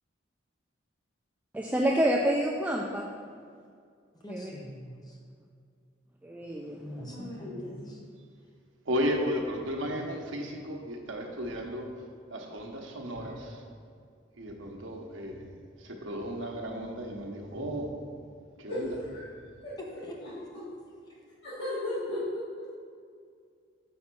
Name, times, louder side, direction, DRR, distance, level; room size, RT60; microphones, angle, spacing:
voice 1, 1.5-3.1 4.3-4.5 6.2-6.8, right 1 dB, 10° right, -1 dB, 0.3 m, -28 dB
voice 2, 4.2-5.2 6.8-8.0 19.8-20.1 21.1-21.2, equal, 20° left, -1 dB, 0.8 m, -44 dB
voice 3, 7.1-8.0 13.2-13.3 18.7-19.3 19.6-19.8 20.5-20.7 21.4-22.8, left 1 dB, 70° left, -12 dB, 1.8 m, -36 dB
voice 4, 8.9-11.9 12.3-13.6 14.4-17.9 18.6-18.9, equal, 80° right, 1 dB, 1.0 m, -34 dB
5.8 x 4.4 x 6.0 m, 2.2 s
head